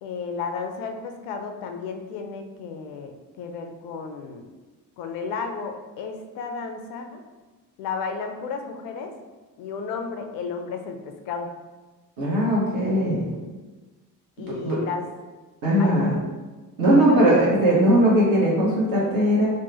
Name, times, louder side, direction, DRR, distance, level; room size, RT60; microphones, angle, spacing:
voice 1, 0.0-4.5 5.0-7.2 7.8-9.1 9.6-11.5 14.4-15.1 15.8-16.3 16.9-17.4 17.7-18.0, left 5 dB, 45° left, 5 dB, 0.4 m, -33 dB
voice 2, 12.2-13.3 14.6-14.8 15.6-16.2 16.8-19.5, right 1 dB, 45° right, -6 dB, 1.0 m, -19 dB
2.8 x 2.1 x 2.7 m, 1.2 s
figure-of-eight pair, 50°, 50 cm